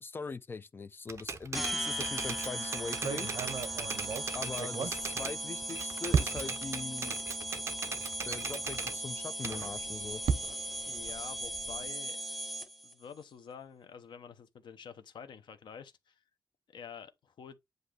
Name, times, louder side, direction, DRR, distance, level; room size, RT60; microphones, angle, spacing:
voice 1, 0.0-3.3 4.3-7.2 8.2-10.2, left 4 dB, 30° left, 0.4 m, -41 dB
Typewriter, 1.1-5.4 5.7-9.0 9.4-11.1, right 5 dB, 35° right, 0.8 m, -39 dB
sound 1, 1.5-12.9, right 1 dB, ahead, 0.8 m, -38 dB
sound 2, 2.1-2.4 2.9-5.7 6.1-6.7 7.4-7.5 7.8-7.9 9.6-11.9, right 6 dB, 65° right, 0.7 m, -35 dB
voice 2, 10.9-12.2 12.8-16.2 16.7-17.6, left 7 dB, 85° left, 0.9 m, -48 dB
8.0 x 2.7 x 5.0 m
wide cardioid pair, 160°, 8 cm